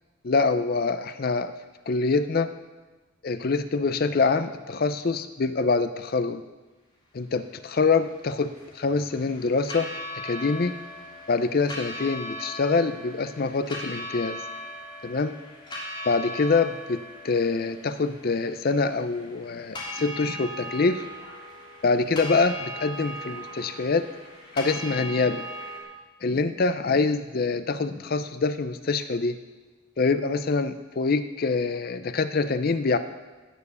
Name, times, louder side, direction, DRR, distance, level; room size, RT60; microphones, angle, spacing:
voice 1, 0.2-1.5 1.9-2.5 3.2-6.4 7.1-9.9 10.2-10.7 11.3-14.4 15.0-15.4 16.1-21.1 21.8-24.1 24.5-25.5 26.2-29.4 30.0-33.0, left 4 dB, 45° left, 11 dB, 0.5 m, -25 dB
sound 1, 7.8-25.8, equal, 25° left, 3.1 m, -39 dB
16.5 x 7.0 x 6.9 m, 1.3 s
head